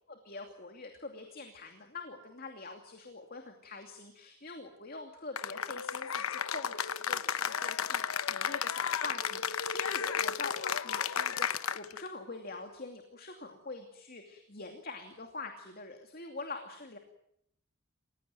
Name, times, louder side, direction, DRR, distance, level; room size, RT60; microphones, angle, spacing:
voice 1, 0.1-17.0, left 3 dB, 45° left, 5 dB, 2.6 m, -45 dB
Cheering / Applause, 5.4-12.1, left 7 dB, 85° left, 1.0 m, -33 dB
28.5 x 17.0 x 9.1 m, 0.75 s
head